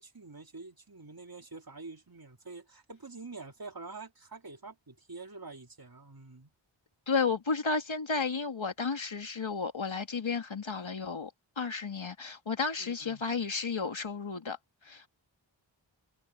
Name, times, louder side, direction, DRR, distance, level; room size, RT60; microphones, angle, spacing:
voice 1, 0.0-6.5 12.8-13.2, right 3 dB, 45° right, 3.3 m, -47 dB
voice 2, 7.1-14.6 14.8-15.1, left 4 dB, 75° left, 2.6 m, -32 dB
wide cardioid pair, 45°, 48 cm